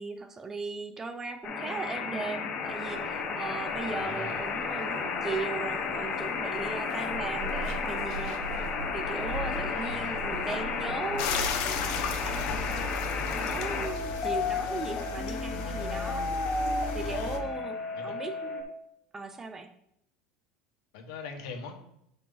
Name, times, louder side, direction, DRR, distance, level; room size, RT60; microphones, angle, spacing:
voice 1, 0.0-8.4 8.9-13.0 13.3-16.3 16.9-18.7 19.1-19.7, right 4 dB, 15° right, 9 dB, 0.5 m, -38 dB
sound 1, 1.4-18.6, left 4 dB, 30° left, 1.2 m, -33 dB
Zipper (clothing), 2.6-14.3, right 2 dB, 80° right, 1.0 m, -42 dB
voice 2, 3.8-4.4 9.7-10.3 17.0-17.4 17.9-18.2 20.9-21.7, left 4 dB, 75° left, 3 dB, 1.5 m, -42 dB
sound 2, 11.2-17.4, left 5 dB, 60° left, 1.0 m, -34 dB
8.2 x 4.6 x 4.0 m, 0.76 s
cardioid pair, 165°, 3 cm